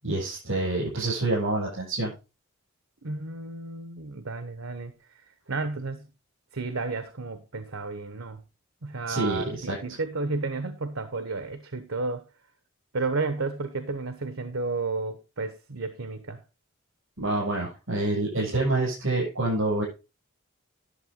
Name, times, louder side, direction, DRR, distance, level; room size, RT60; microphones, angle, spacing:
voice 1, 0.0-2.1 9.1-9.7 17.2-19.8, right 2 dB, 70° right, -6 dB, 7.4 m, -27 dB
voice 2, 3.0-6.0 6.5-8.4 8.8-12.2 12.9-16.4, right 3 dB, 90° right, 11 dB, 1.0 m, -32 dB
11.5 x 7.2 x 3.7 m, 0.28 s
head